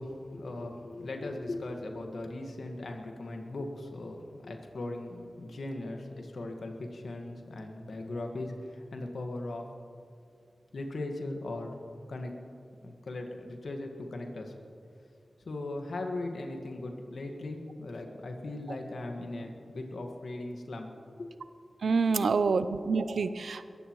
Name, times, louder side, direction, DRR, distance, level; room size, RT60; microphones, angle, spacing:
voice 1, 0.0-9.7 10.7-11.7 12.1-12.3 12.8-14.5 15.4-20.9 21.2-21.3, left 2 dB, 80° left, 3 dB, 1.7 m, -38 dB
voice 2, 21.8-23.7, right 4 dB, 90° right, 12 dB, 0.5 m, -27 dB
21.5 x 15.0 x 3.1 m, 2.3 s
cardioid pair, 50°, 0 cm